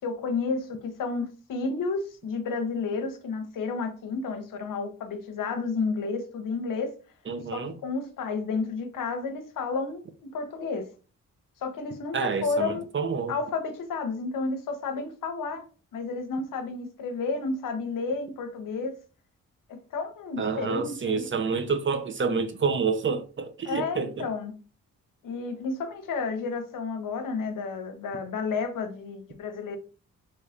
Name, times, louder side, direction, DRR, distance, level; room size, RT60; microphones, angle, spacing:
voice 1, 0.0-6.9 7.5-10.9 11.6-12.9 13.3-15.6 15.9-19.0 19.7-21.3 23.6-24.5 25.2-29.8, left 4 dB, 75° left, 0.7 m, -31 dB
voice 2, 7.3-7.7 12.1-13.3 20.4-24.3, right 5 dB, 35° right, 0.6 m, -28 dB
3.1 x 3.0 x 2.4 m
supercardioid pair, 55°, 33 cm